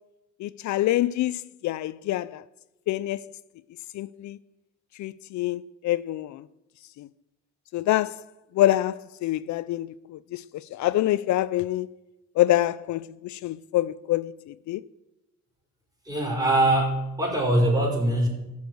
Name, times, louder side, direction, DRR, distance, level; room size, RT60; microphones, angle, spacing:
voice 1, 0.4-2.4 2.9-3.2 3.9-4.4 5.0-6.4 7.0-7.1 7.7-8.2 8.6-11.9 12.4-14.8, left 14 dB, 70° left, 0.5 m, -26 dB
voice 2, 16.0-18.3, right 1 dB, 10° right, 5.2 m, -22 dB
14.0 x 7.0 x 7.8 m
cardioid pair, 90°, 30 cm